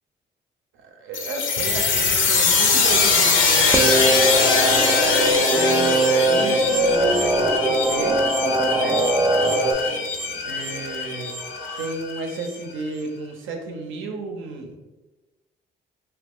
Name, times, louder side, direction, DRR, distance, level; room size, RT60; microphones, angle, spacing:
voice 1, 0.7-4.1 5.0-8.2 8.7-9.0 10.4-11.3 11.8-14.8, right 3 dB, 85° right, 3 dB, 0.6 m, -33 dB
sound 1, 1.1-12.5, left 4 dB, 80° left, 0.6 m, -22 dB
sound 2, 3.7-9.7, right 2 dB, 10° right, 0.3 m, -21 dB
2.8 x 2.4 x 3.4 m, 1.1 s
cardioid pair, 90°, 20 cm